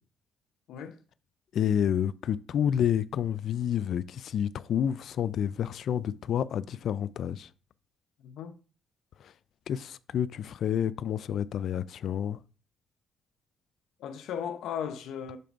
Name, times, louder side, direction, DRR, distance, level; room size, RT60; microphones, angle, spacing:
voice 1, 1.5-7.5 9.2-9.3 9.7-12.4, left 9 dB, 65° left, 0.4 m, -29 dB
voice 2, 8.2-8.6 14.0-15.4, left 8 dB, 85° left, 0.7 m, -36 dB
6.8 x 3.3 x 5.1 m
cardioid pair, 90°, 0 cm